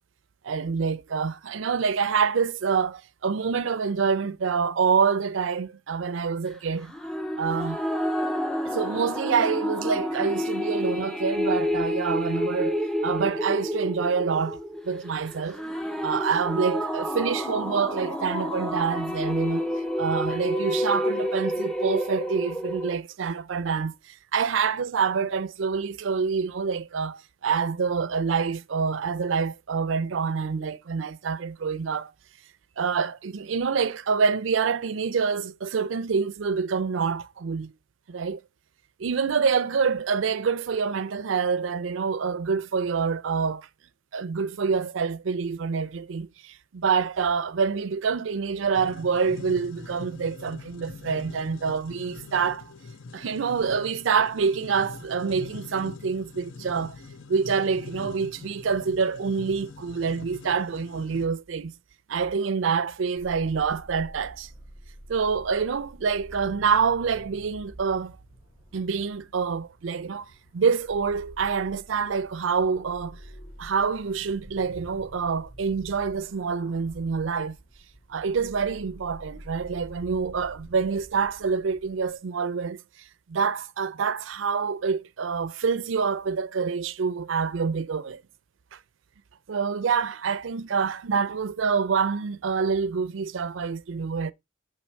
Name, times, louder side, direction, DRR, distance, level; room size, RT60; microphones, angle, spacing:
voice 1, 0.4-6.9 7.4-7.8 8.7-14.6 14.9-15.6 16.0-19.7 20.0-32.1 32.8-37.7 38.1-38.4 39.0-43.7 44.1-52.6 53.1-57.0 57.3-61.7 62.1-64.5 65.1-68.2 68.7-70.3 70.5-73.2 73.6-77.6 78.1-82.8 83.3-88.2 88.7-88.8 89.5-94.3, right 5 dB, 75° right, 0.5 m, -26 dB
sound 1, 6.9-22.9, equal, 5° left, 0.4 m, -29 dB
sound 2, 48.7-61.3, left 4 dB, 75° left, 0.6 m, -43 dB
sound 3, 63.2-82.2, right 1 dB, 60° left, 3.8 m, -48 dB
7.4 x 3.1 x 4.4 m
head